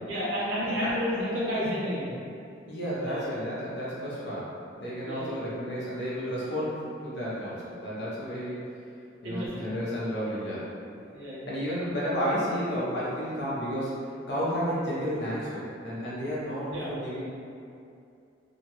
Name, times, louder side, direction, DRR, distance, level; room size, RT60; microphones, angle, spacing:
voice 1, 0.0-2.2 3.0-3.4 5.0-5.5 9.2-9.6 11.1-11.4 16.7-16.9, equal, 90° right, -8 dB, 0.9 m, -31 dB
voice 2, 2.7-4.5 4.8-8.6 9.2-10.6 11.5-13.9 14.3-17.2, equal, 60° left, -8 dB, 0.8 m, -32 dB
2.9 x 2.4 x 2.9 m, 2.5 s
head